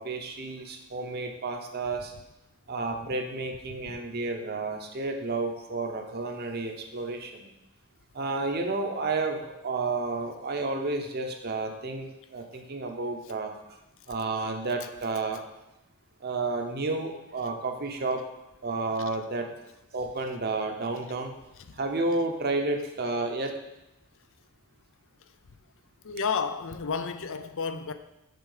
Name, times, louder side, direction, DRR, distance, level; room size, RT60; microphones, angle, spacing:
voice 1, 0.0-2.1 2.7-7.5 8.1-13.5 14.1-15.4 16.2-18.3 18.6-19.5 19.9-21.3 21.8-23.5, right 3 dB, 45° right, 0.9 m, -31 dB
voice 2, 26.0-27.9, left 5 dB, 60° left, 0.5 m, -31 dB
6.7 x 4.5 x 6.6 m
head